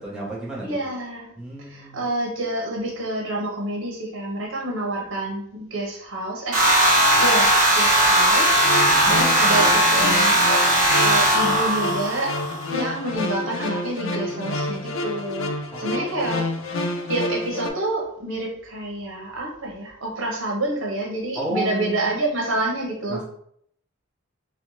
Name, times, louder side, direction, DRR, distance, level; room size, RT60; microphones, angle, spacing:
voice 1, 0.0-0.8 1.4-2.0 15.7-16.5 21.3-22.2 23.1-23.2, right 1 dB, 5° right, -6 dB, 0.9 m, -32 dB
voice 2, 0.6-1.3 1.6-6.6 7.2-10.4 11.0-12.3 12.7-15.5 15.8-23.2, right 2 dB, 65° right, -1 dB, 1.1 m, -28 dB
sound 1, 6.5-12.7, right 1 dB, 40° right, 1.3 m, -18 dB
sound 2, 8.5-17.7, left 2 dB, 70° left, 0.5 m, -29 dB
4.2 x 2.3 x 3.1 m, 0.69 s
head